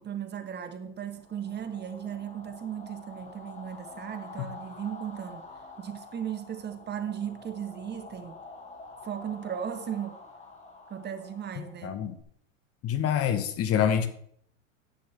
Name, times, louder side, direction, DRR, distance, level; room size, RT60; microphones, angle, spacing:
voice 1, 0.0-5.5 5.8-8.4 9.0-10.2 10.9-12.0, right 9 dB, 25° right, 1.5 m, -36 dB
sound 1, 1.1-12.2, left 3 dB, 20° left, 2.4 m, -48 dB
voice 2, 11.8-12.1 12.8-14.1, left 9 dB, 35° left, 1.3 m, -26 dB
14.5 x 10.5 x 3.5 m
hypercardioid pair, 95°, 39 cm